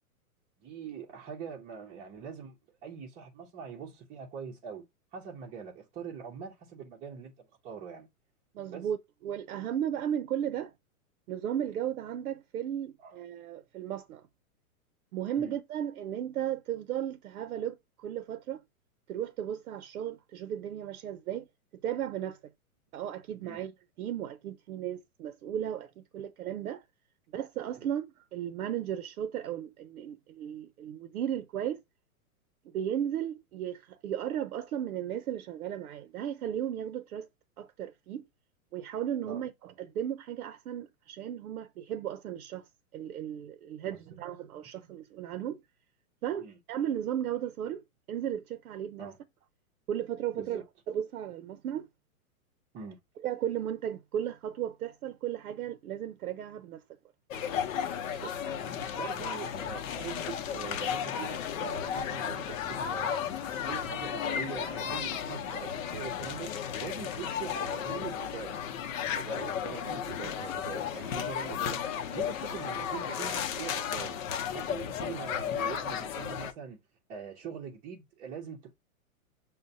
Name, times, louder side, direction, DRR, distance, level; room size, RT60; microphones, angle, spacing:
voice 1, 0.6-4.8 5.1-8.1 8.7-8.9 13.0-13.2 15.4-15.6 23.4-23.6 39.2-39.4 43.8-44.0 46.4-46.6 49.0-49.2 50.3-50.6 52.7-53.0 58.0-58.3 58.6-63.2 63.7-66.6 66.8-68.6 69.1-74.2 74.5-76.8 77.1-78.7, right 7 dB, 20° right, 0.6 m, -43 dB
voice 2, 8.5-9.0 9.2-10.7 11.3-14.3 15.1-18.6 19.1-21.5 21.8-22.4 22.9-23.7 24.0-26.8 27.3-31.8 32.6-37.3 37.6-38.2 38.7-42.7 42.9-45.6 46.2-49.1 49.9-51.9 53.2-56.8, right 10 dB, 80° right, 0.7 m, -35 dB
sound 1, 57.3-76.5, left 8 dB, 60° left, 0.8 m, -34 dB
6.4 x 2.2 x 2.6 m
hypercardioid pair, 140°, 44 cm